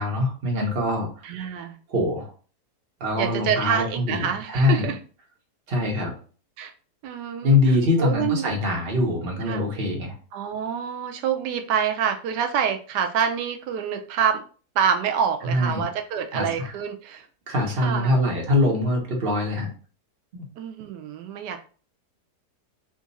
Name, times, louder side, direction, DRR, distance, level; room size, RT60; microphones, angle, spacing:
voice 1, 0.0-1.1 1.9-2.3 3.0-4.9 5.7-6.1 7.4-10.1 15.4-15.8 16.3-16.7 17.5-19.7 20.3-20.4, left 2 dB, 40° right, 0 dB, 1.2 m, -23 dB
voice 2, 1.2-1.8 3.1-5.0 6.6-6.7 7.0-7.6 8.0-8.5 9.5-9.6 10.3-14.4 14.8-17.3 17.8-18.1 20.6-21.7, right 7 dB, 90° right, 5 dB, 1.2 m, -26 dB
3.6 x 2.5 x 4.0 m, 0.39 s
omnidirectional pair, 1.8 m